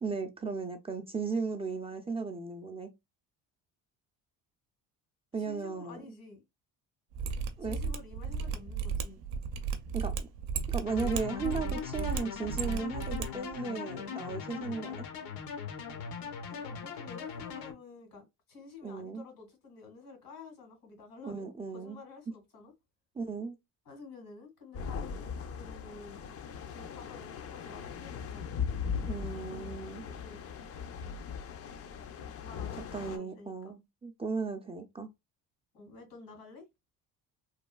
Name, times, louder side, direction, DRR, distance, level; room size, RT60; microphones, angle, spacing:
voice 1, 0.0-2.9 5.3-6.0 7.6-7.8 9.9-10.3 10.7-15.1 18.8-19.2 21.2-22.0 23.2-23.6 29.1-30.0 32.9-35.1, right 4 dB, 15° right, 0.4 m, -36 dB
voice 2, 5.4-6.4 7.6-9.2 16.5-21.5 21.7-22.7 23.9-26.2 26.7-28.5 29.3-30.5 32.0-32.1 32.4-33.7 35.7-36.7, left 4 dB, 85° left, 2.0 m, -50 dB
Mechanisms, 7.1-13.3 13.5-13.6, right 6 dB, 80° right, 0.6 m, -34 dB
sound 1, 10.9-17.7, left 7 dB, 70° left, 0.8 m, -40 dB
sound 2, 24.7-33.2, left 6 dB, 40° left, 0.5 m, -39 dB
3.1 x 2.3 x 2.2 m
cardioid pair, 90°, 37 cm